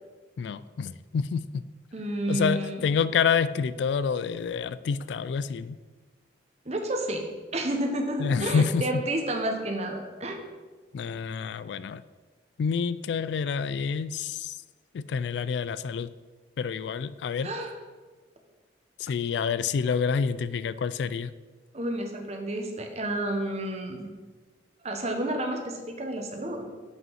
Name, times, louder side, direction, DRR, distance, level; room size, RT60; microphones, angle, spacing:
voice 1, 0.4-1.6 2.3-5.8 8.2-8.9 10.9-12.0 12.6-14.6 14.9-16.1 16.6-17.5 19.0-21.3, left 6 dB, 65° left, 16 dB, 0.3 m, -28 dB
voice 2, 1.9-2.9 6.6-7.2 7.5-10.4 17.4-17.7 21.7-24.1 24.8-26.7, right 1 dB, 35° right, 3 dB, 1.0 m, -30 dB
8.0 x 5.2 x 5.6 m, 1.4 s
head